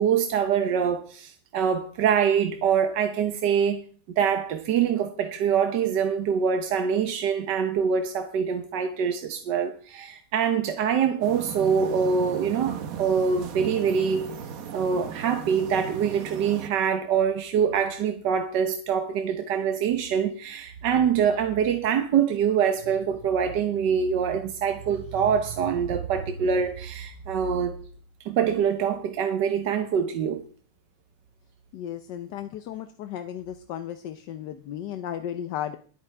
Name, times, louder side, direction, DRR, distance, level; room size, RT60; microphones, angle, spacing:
voice 1, 0.0-3.8 4.2-14.3 14.7-27.8 28.2-30.4, right 7 dB, 80° right, 1.6 m, -24 dB
sound 1, 11.2-16.7, right 8 dB, 55° right, 1.4 m, -37 dB
voice 2, 31.7-35.8, left 10 dB, 80° left, 1.4 m, -35 dB
21.5 x 9.0 x 3.4 m
omnidirectional pair, 1.9 m